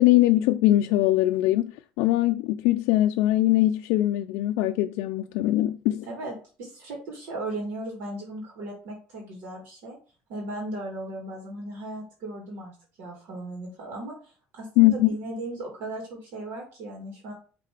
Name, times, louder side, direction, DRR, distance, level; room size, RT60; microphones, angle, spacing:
voice 1, 0.0-1.7 2.0-6.1 14.8-15.1, left 15 dB, 85° left, 0.4 m, -21 dB
voice 2, 6.1-10.0 10.3-17.3, right 2 dB, 70° right, 2.4 m, -37 dB
5.7 x 3.7 x 4.9 m
cardioid pair, 135°, 4 cm